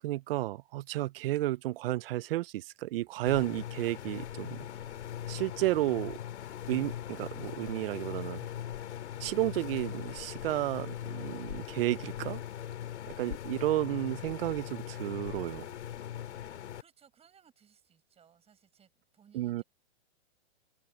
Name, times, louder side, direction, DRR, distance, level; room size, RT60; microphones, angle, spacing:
voice 1, 0.0-4.6 5.3-6.2 6.7-8.5 9.2-12.4 13.1-15.7 19.3-19.6, right 16 dB, 55° right, 0.6 m, -32 dB
sound 1, 3.3-16.8, left 11 dB, 80° left, 2.3 m, -40 dB
Trumpet, 5.1-11.6, left 17 dB, 55° left, 2.5 m, -62 dB
voice 2, 16.3-19.6, right 8 dB, 15° right, 5.6 m, -64 dB
hypercardioid pair, 140°, 34 cm